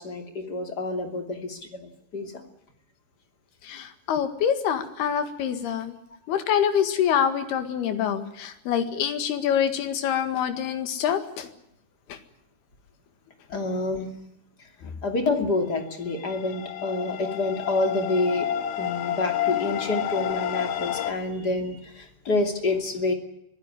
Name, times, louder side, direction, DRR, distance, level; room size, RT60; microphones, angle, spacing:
voice 1, 0.0-2.3 13.5-14.1 15.0-18.5 18.8-23.1, left 2 dB, 30° left, 5 dB, 2.8 m, -28 dB
voice 2, 3.7-6.0 6.3-11.5, left 8 dB, 90° left, 9 dB, 4.0 m, -25 dB
sound 1, 16.1-21.1, left 11 dB, 70° left, 1.9 m, -30 dB
24.0 x 16.0 x 9.8 m, 0.78 s
omnidirectional pair, 4.4 m